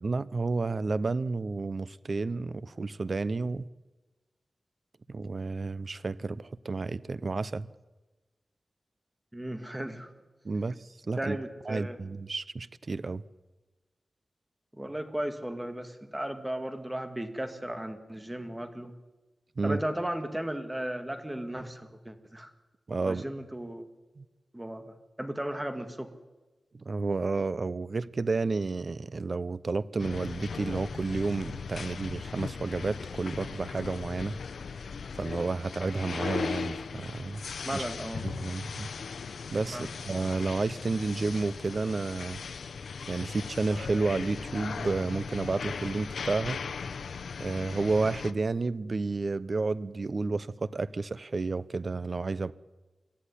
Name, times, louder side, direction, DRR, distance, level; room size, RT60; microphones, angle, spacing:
voice 1, 0.0-3.6 5.1-7.7 10.4-10.8 11.1-11.4 11.7-13.2 19.6-19.8 22.9-23.2 24.2-24.3 26.8-34.4 35.2-37.4 37.7-37.8 38.2-38.9 39.5-42.4 43.1-46.6 47.4-52.5, right 3 dB, 50° right, 0.8 m, -31 dB
voice 2, 9.3-10.1 11.2-12.0 14.7-18.9 19.6-22.5 23.0-23.9 24.5-26.1 37.6-38.3 39.7-39.9, right 1 dB, 10° right, 2.0 m, -35 dB
sound 1, 30.0-48.3, left 5 dB, 90° left, 0.8 m, -38 dB
24.0 x 14.5 x 10.0 m
wide cardioid pair, 85°, 0 cm